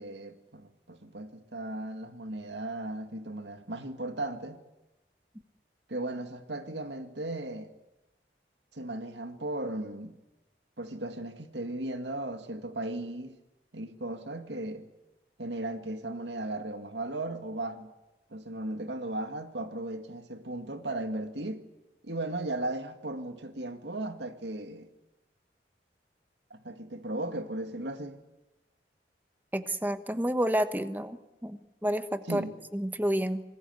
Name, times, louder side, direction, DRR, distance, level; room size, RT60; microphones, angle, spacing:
voice 1, 0.0-4.6 5.9-7.7 8.7-10.1 10.8-13.3 13.7-14.9 15.4-17.9 18.3-21.7 22.0-24.9 26.5-28.2 32.2-32.5, right 2 dB, 80° right, 2.2 m, -36 dB
voice 2, 29.5-31.2 31.4-32.4 32.7-33.4, equal, 10° right, 1.2 m, -29 dB
27.0 x 20.0 x 8.1 m
head